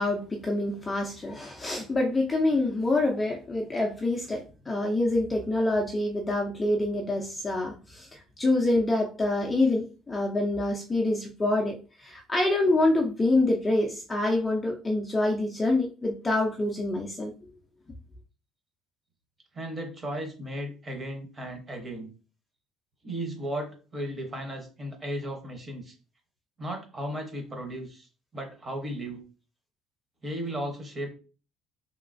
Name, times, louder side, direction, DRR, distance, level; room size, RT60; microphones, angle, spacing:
voice 1, 0.0-17.3, left 2 dB, 15° left, 0 dB, 0.4 m, -26 dB
voice 2, 19.5-22.1 23.0-25.9 26.6-28.1 28.3-29.2 30.2-31.1, right 1 dB, 20° right, 3 dB, 0.9 m, -35 dB
3.0 x 2.8 x 2.5 m, 0.35 s
cardioid pair, 155°, 0 cm